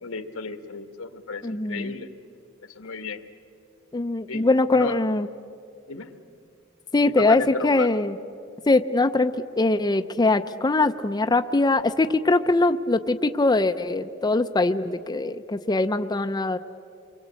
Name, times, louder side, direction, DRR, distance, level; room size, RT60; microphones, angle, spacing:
voice 1, 0.0-2.1 2.7-3.2 4.3-4.9 5.9-6.1 7.2-7.9, left 4 dB, 85° left, 9 dB, 1.6 m, -33 dB
voice 2, 1.4-2.0 3.9-5.3 6.9-8.2 8.7-16.6, left 2 dB, 20° left, 8 dB, 0.5 m, -22 dB
28.5 x 23.5 x 8.2 m, 2.6 s
head